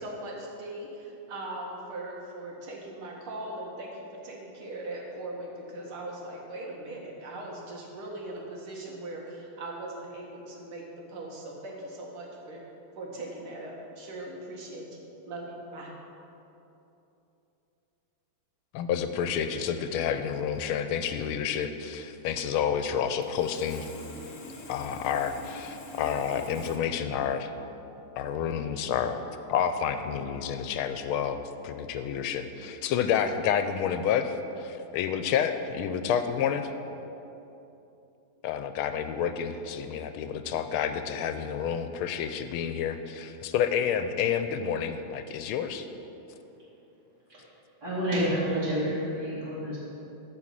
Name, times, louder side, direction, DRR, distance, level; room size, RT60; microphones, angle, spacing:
voice 1, 0.0-10.8 11.1-12.6 12.9-15.0 15.3-15.9, right 1 dB, 80° right, -2 dB, 2.5 m, -40 dB
voice 2, 18.7-23.9 24.7-27.5 28.2-29.2 29.5-36.7 38.4-45.9, left 8 dB, 90° left, 9 dB, 1.5 m, -29 dB
Sawing, 23.2-26.8, left 3 dB, 55° left, 1.8 m, -44 dB
voice 3, 47.8-49.8, equal, 50° right, -12 dB, 3.0 m, -28 dB
13.5 x 5.0 x 7.5 m, 2.9 s
omnidirectional pair, 2.3 m